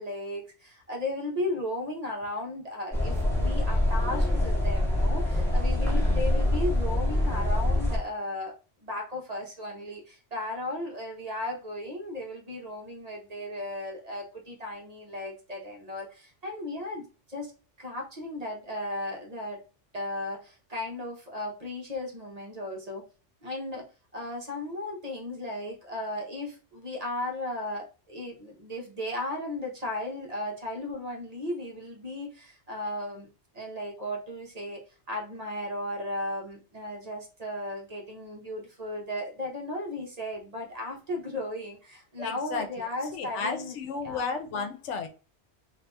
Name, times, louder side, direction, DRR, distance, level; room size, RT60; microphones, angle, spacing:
voice 1, 0.0-8.6 8.8-17.0 17.3-17.5 17.8-19.6 19.9-23.0 23.4-23.9 24.1-33.3 33.5-34.8 35.1-43.8 44.0-44.3, left 1 dB, 35° right, 0 dB, 0.9 m, -35 dB
sound 1, 2.9-8.0, left 1 dB, ahead, 1.2 m, -25 dB
voice 2, 42.2-42.9 43.1-45.1, left 4 dB, 80° left, 8 dB, 1.0 m, -33 dB
2.8 x 2.7 x 3.3 m, 0.34 s
omnidirectional pair, 1.2 m